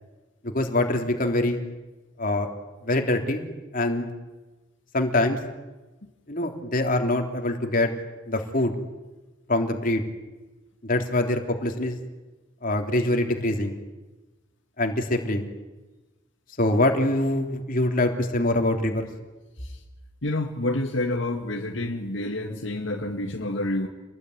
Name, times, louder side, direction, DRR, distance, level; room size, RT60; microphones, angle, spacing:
voice 1, 0.4-1.6 2.2-2.5 2.8-3.5 3.7-4.1 4.9-5.4 6.3-7.9 8.3-8.7 9.5-10.0 10.8-12.0 12.6-13.7 14.8-15.5 16.6-19.1, left 1 dB, 45° left, 4 dB, 3.3 m, -24 dB
voice 2, 20.2-23.9, left 1 dB, 65° left, 2 dB, 2.1 m, -28 dB
28.5 x 20.5 x 9.7 m, 1.1 s
head